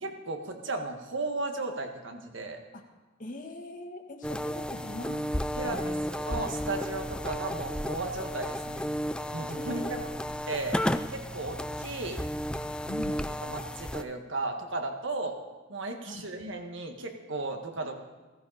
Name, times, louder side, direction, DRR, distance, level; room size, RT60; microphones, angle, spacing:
voice 1, 0.0-2.6 5.5-8.9 9.3-9.8 10.5-10.8 11.1-12.2 13.1-13.2 13.4-15.4 15.7-18.0, right 3 dB, 65° right, 4 dB, 1.7 m, -35 dB
voice 2, 3.2-5.3 5.6-6.0 9.6-10.1 12.9-13.2 16.0-16.2, left 1 dB, 40° left, 3 dB, 1.6 m, -41 dB
sound 1, 4.2-14.0, equal, 5° left, 0.3 m, -33 dB
16.0 x 14.5 x 4.2 m, 1.2 s
head